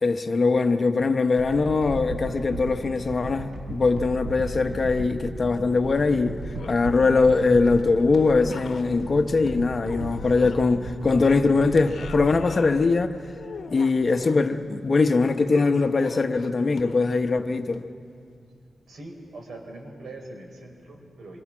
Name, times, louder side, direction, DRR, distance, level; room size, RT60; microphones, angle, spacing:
voice 1, 0.0-6.4 6.7-13.1 13.7-17.9, left 3 dB, 35° left, 0.9 m, -22 dB
sound 1, 1.4-13.6 14.1-14.2, right 1 dB, 65° right, 4.2 m, -36 dB
sound 2, 1.6-3.1 4.3-5.7 6.0-10.9 11.2-12.9 13.3-14.4 15.5-17.3 17.7-17.8, left 5 dB, 65° left, 0.9 m, -42 dB
voice 2, 18.9-21.4, right 2 dB, 85° right, 4.4 m, -42 dB
27.0 x 23.5 x 6.1 m
wide cardioid pair, 160°, 0 cm